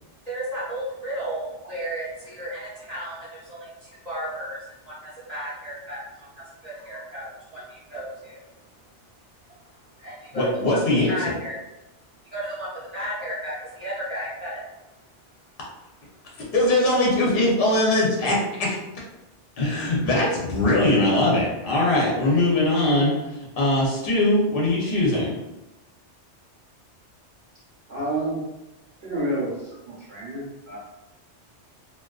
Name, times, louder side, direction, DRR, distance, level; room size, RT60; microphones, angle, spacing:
voice 1, 0.3-4.6 4.8-8.4 10.0-10.8 11.1-11.6 12.3-14.6, right 1 dB, 40° right, -9 dB, 0.7 m, -34 dB
voice 2, 10.3-11.2 16.5-18.8 19.6-23.1 23.6-25.3, left 1 dB, 60° left, -4 dB, 0.8 m, -21 dB
voice 3, 27.9-28.4 29.0-30.8, right 1 dB, 60° right, -8 dB, 1.0 m, -29 dB
2.4 x 2.4 x 2.3 m, 0.98 s
omnidirectional pair, 1.2 m